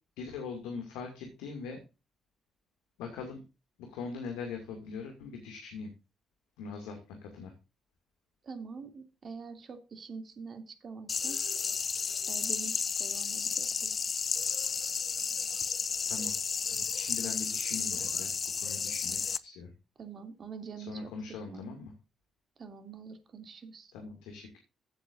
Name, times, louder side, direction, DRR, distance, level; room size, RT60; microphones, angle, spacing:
voice 1, 0.2-1.8 3.0-3.4 3.8-5.9 6.6-7.5 16.1-16.3 16.7-19.7 20.8-21.9 23.9-24.6, left 5 dB, 75° left, 4 dB, 2.3 m, -41 dB
voice 2, 8.4-11.4 12.3-14.0 20.0-21.7 22.6-23.9, right 5 dB, 50° right, 7 dB, 2.7 m, -45 dB
sound 1, 11.1-19.4, left 6 dB, 45° left, 0.8 m, -32 dB
15.5 x 8.2 x 2.6 m, 0.29 s
hypercardioid pair, 45°, 0 cm